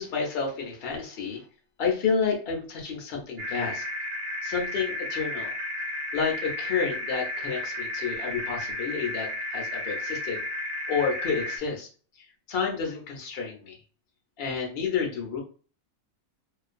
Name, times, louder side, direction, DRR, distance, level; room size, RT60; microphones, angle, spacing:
voice 1, 0.0-1.4 1.8-3.8 4.4-5.5 6.1-10.4 10.9-11.9 12.5-13.8 14.4-15.4, left 5 dB, 65° left, 0 dB, 0.6 m, -30 dB
sound 1, 3.4-11.6, left 1 dB, 75° right, 1.0 m, -33 dB
2.4 x 2.3 x 2.4 m, 0.39 s
omnidirectional pair, 1.5 m